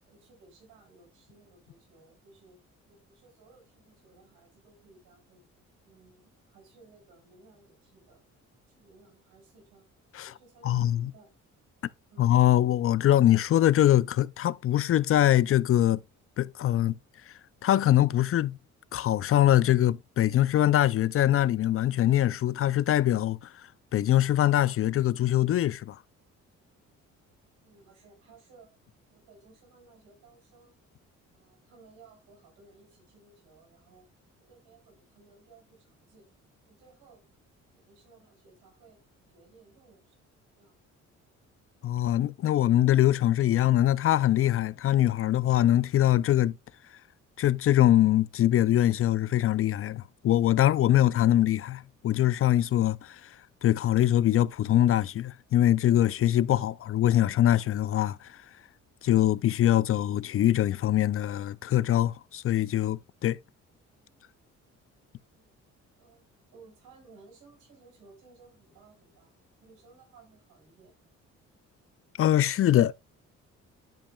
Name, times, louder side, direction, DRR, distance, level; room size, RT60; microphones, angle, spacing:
voice 1, 0.1-2.6 2.9-5.4 5.8-8.2 8.7-9.8 10.2-11.3 12.1-12.3 27.6-28.8 29.1-30.8 31.3-34.1 34.4-36.3 36.7-37.2 37.7-39.0 39.3-40.2 40.6-40.8 65.3-65.5 66.0-69.3 69.6-71.0, right 4 dB, 90° right, 5.4 m, -58 dB
voice 2, 10.6-11.1 12.2-16.0 16.4-17.0 17.6-18.6 18.9-26.0 41.8-46.5 47.4-53.3 53.6-58.4 59.0-63.4 72.2-72.9, left 12 dB, 50° left, 0.4 m, -23 dB
12.0 x 5.2 x 2.3 m
cardioid pair, 90°, 30 cm